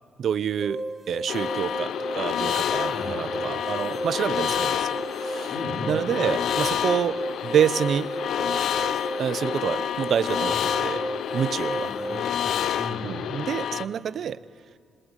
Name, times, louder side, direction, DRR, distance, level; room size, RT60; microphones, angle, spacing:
voice 1, 0.2-5.5 5.9-8.1 9.2-11.0 11.3-11.9 13.0-14.4, right 8 dB, 60° right, 17 dB, 0.7 m, -27 dB
sound 1, 0.6-12.3, right 1 dB, 20° right, 1.2 m, -34 dB
sound 2, 1.3-13.9, left 9 dB, 70° left, 0.8 m, -28 dB
voice 2, 2.8-3.3 5.5-5.9 10.5-10.6 11.8-13.1, left 2 dB, 45° left, 1 dB, 5.0 m, -37 dB
25.5 x 21.0 x 9.9 m, 2.1 s
cardioid pair, 90°, 0 cm